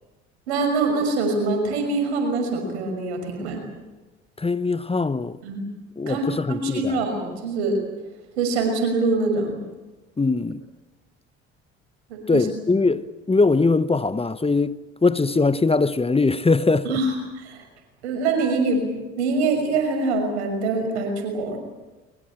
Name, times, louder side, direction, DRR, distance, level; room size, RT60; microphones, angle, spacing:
voice 1, 0.5-3.6 5.4-5.6 6.1-7.7 8.4-9.6 12.1-12.5 16.8-17.6 18.0-21.6, right 3 dB, 85° right, 6.0 m, -24 dB
voice 2, 4.4-5.4 6.0-7.0 10.2-10.6 12.3-14.8 15.0-17.0, left 3 dB, 20° left, 1.1 m, -21 dB
23.0 x 23.0 x 9.0 m
hypercardioid pair, 60°, 33 cm